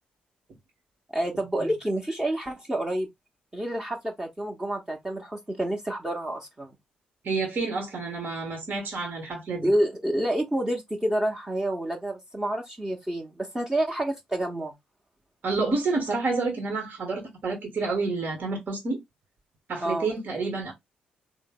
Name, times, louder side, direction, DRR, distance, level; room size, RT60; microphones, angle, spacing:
voice 1, 1.1-3.1 3.5-6.8 9.6-14.7 19.8-20.1, right 1 dB, 15° right, 0.9 m, -28 dB
voice 2, 7.2-9.7 15.4-19.0 19.7-20.7, right 3 dB, 50° right, 1.3 m, -29 dB
3.7 x 2.0 x 3.5 m
figure-of-eight pair, 40°, 4 cm